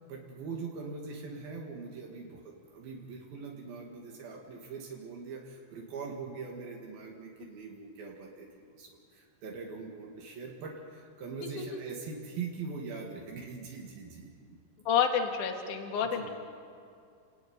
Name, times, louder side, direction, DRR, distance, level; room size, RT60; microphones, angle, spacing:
voice 1, 0.1-14.6 16.0-16.3, right 4 dB, 80° right, 0 dB, 4.0 m, -42 dB
voice 2, 14.9-16.3, left 7 dB, 60° left, 3 dB, 3.1 m, -29 dB
29.5 x 17.0 x 9.6 m, 2.3 s
omnidirectional pair, 4.2 m